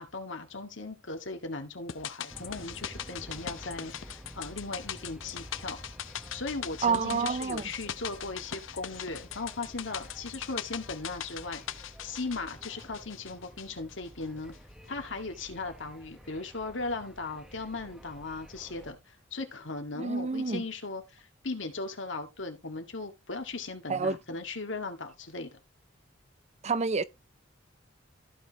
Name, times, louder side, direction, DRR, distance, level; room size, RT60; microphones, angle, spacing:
voice 1, 0.0-5.8 6.3-14.5 14.9-25.5, left 3 dB, 70° left, 1.9 m, -38 dB
sound 1, 1.9-14.2 14.5-14.6, left 9 dB, 90° left, 0.7 m, -41 dB
sound 2, 2.3-18.9, equal, 5° right, 1.0 m, -50 dB
voice 2, 6.8-7.6 20.0-20.6 23.9-24.2 26.6-27.0, right 5 dB, 35° right, 0.6 m, -28 dB
14.5 x 5.5 x 2.9 m
head